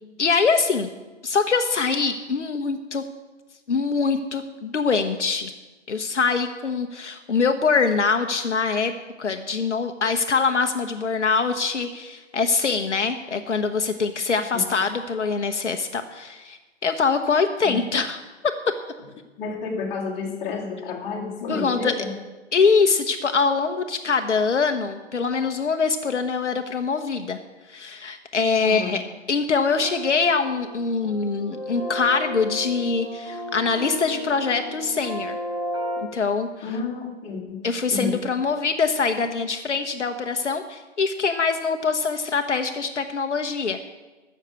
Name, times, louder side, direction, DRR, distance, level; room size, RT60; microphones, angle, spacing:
voice 1, 0.2-0.9 1.2-3.0 3.7-5.5 5.9-8.9 9.2-18.2 21.5-21.9 22.5-27.4 27.7-29.0 29.3-35.4 36.1-36.8 37.6-43.9, left 5 dB, 70° left, 6 dB, 1.0 m, -23 dB
voice 2, 19.4-22.1 28.6-28.9 36.6-37.6 37.9-38.1, left 4 dB, 20° left, -3 dB, 2.2 m, -30 dB
sound 1, 29.7-36.0, left 1 dB, 25° right, 4.1 m, -33 dB
14.0 x 6.6 x 8.2 m, 1.2 s
figure-of-eight pair, 130°, 36 cm